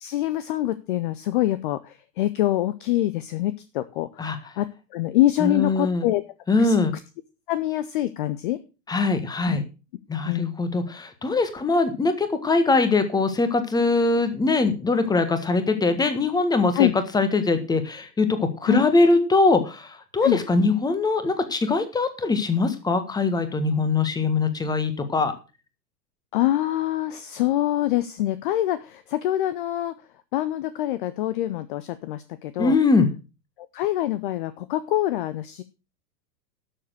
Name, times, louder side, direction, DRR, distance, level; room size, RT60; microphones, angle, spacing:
voice 1, 0.0-4.3 4.6-4.7 4.9-6.2 6.6-6.8 7.5-8.6 9.5-9.6 10.2-10.5 16.7-16.9 18.6-18.8 20.2-20.4 26.3-29.9 30.3-32.8 33.7-35.6, left 14 dB, 30° left, 14 dB, 0.7 m, -25 dB
voice 2, 5.4-6.1 6.5-6.9 8.9-9.6 10.1-16.9 17.1-25.3 32.6-33.1, left 3 dB, 10° left, 10 dB, 1.5 m, -22 dB
12.0 x 7.1 x 6.3 m, 0.31 s
figure-of-eight pair, 100°, 49 cm